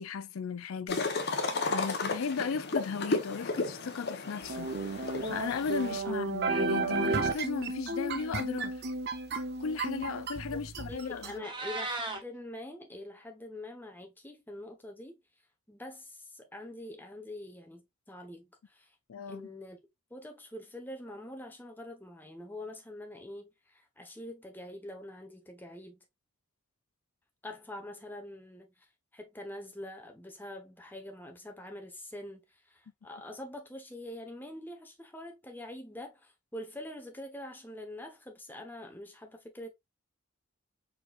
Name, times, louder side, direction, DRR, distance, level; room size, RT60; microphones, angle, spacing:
voice 1, 0.0-8.8 9.6-11.5 19.1-19.5, left 5 dB, 85° left, 0.4 m, -36 dB
sound 1, 0.9-6.0, left 3 dB, 50° left, 1.0 m, -34 dB
sound 2, 4.5-11.3, right 3 dB, 50° right, 0.8 m, -33 dB
voice 2, 10.9-15.2 15.7-19.0 19.3-19.8 20.1-26.0 27.4-39.7, left 1 dB, 10° left, 1.1 m, -45 dB
Meow, 11.2-12.2, right 2 dB, 25° right, 1.3 m, -36 dB
4.6 x 4.4 x 2.4 m
head